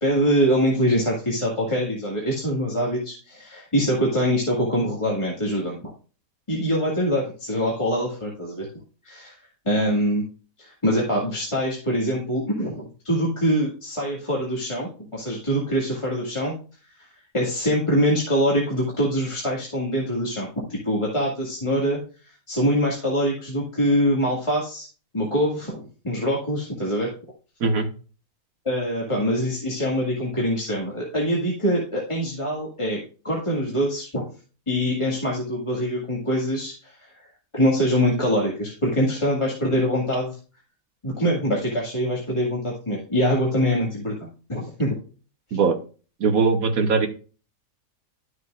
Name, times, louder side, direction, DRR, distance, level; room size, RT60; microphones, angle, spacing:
voice 1, 0.0-5.8 6.5-8.7 9.1-9.3 9.7-10.2 10.6-16.5 17.3-22.0 22.5-24.9 25.1-27.1 28.7-34.2 34.7-36.9 37.5-40.3 41.0-45.0, equal, 20° left, -5 dB, 1.8 m, -24 dB
voice 2, 46.2-47.1, right 4 dB, 55° right, 6 dB, 1.4 m, -20 dB
12.0 x 6.5 x 2.4 m, 0.37 s
omnidirectional pair, 1.9 m